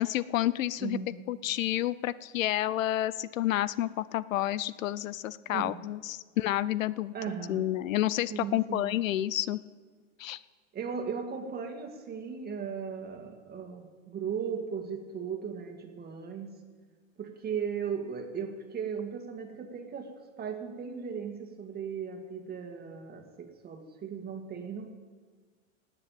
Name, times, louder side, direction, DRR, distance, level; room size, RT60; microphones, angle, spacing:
voice 1, 0.0-1.0 1.3-7.1 7.5-9.6 10.2-10.4, left 14 dB, 85° left, 19 dB, 0.6 m, -30 dB
voice 2, 0.8-1.1 5.5-5.8 7.1-7.7 8.3-8.9 10.7-16.5 17.2-20.1 20.4-24.9, right 6 dB, 25° right, 5 dB, 2.0 m, -37 dB
18.0 x 6.8 x 8.9 m, 1.5 s
hypercardioid pair, 120°, 39 cm